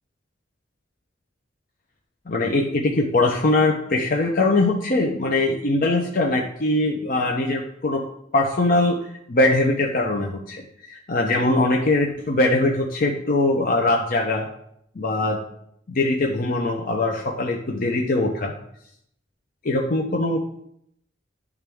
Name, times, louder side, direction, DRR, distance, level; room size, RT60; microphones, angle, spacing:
voice 1, 2.3-8.0 8.3-9.0 9.3-14.5 15.0-15.4 15.9-18.5 19.6-20.4, left 2 dB, 50° left, 0 dB, 0.7 m, -21 dB
10.5 x 3.6 x 3.5 m, 0.72 s
head